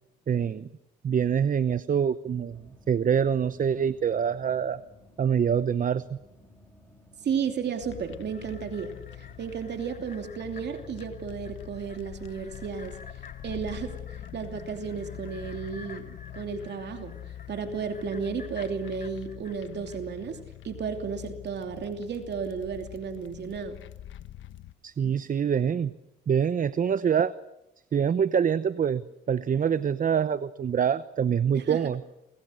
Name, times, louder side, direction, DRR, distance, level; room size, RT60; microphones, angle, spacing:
voice 1, 0.3-0.7 1.0-4.8 5.2-6.2 24.8-25.9 26.3-27.3 27.9-29.0 29.3-32.0, right 7 dB, 45° right, 15 dB, 0.8 m, -25 dB
sound 1, 2.5-11.2, equal, 10° left, 5.1 m, -56 dB
voice 2, 7.2-13.0 13.4-17.2 17.5-20.4 20.6-23.8 31.5-31.9, right 6 dB, 60° right, 5 dB, 2.9 m, -33 dB
sound 2, 7.8-24.7, left 12 dB, 75° left, 1.2 m, -44 dB
sound 3, 7.9-20.4 20.8-20.9, left 5 dB, 45° left, 3.2 m, -52 dB
29.5 x 25.5 x 6.5 m, 0.89 s
cardioid pair, 90°, 20 cm